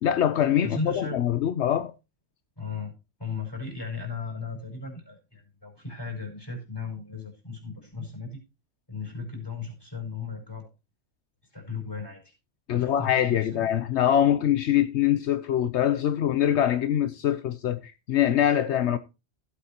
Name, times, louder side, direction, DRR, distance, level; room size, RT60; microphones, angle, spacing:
voice 1, 0.0-1.9 12.7-19.0, left 10 dB, 75° left, 1.0 m, -24 dB
voice 2, 0.6-1.2 2.6-2.9 3.2-8.4 8.9-10.7 11.5-12.3 12.7-13.7, left 4 dB, 20° left, 5.3 m, -36 dB
16.5 x 8.5 x 2.9 m
omnidirectional pair, 1.2 m